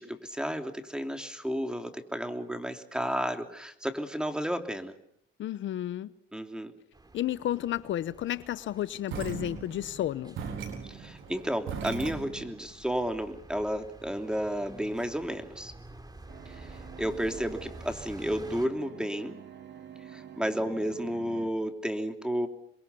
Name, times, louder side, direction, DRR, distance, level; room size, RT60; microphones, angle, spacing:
voice 1, 0.0-4.9 6.3-6.7 10.9-15.7 16.5-16.7 17.0-19.4 20.1-22.5, equal, 5° right, 3.1 m, -32 dB
voice 2, 5.4-6.1 7.1-10.4, left 12 dB, 70° left, 0.9 m, -32 dB
sound 1, 6.9-18.7, right 2 dB, 20° right, 3.3 m, -50 dB
sound 2, 9.1-12.6, right 6 dB, 85° right, 4.3 m, -38 dB
sound 3, 16.3-21.5, right 9 dB, 60° right, 2.8 m, -48 dB
28.5 x 22.5 x 7.0 m
cardioid pair, 90°, 20 cm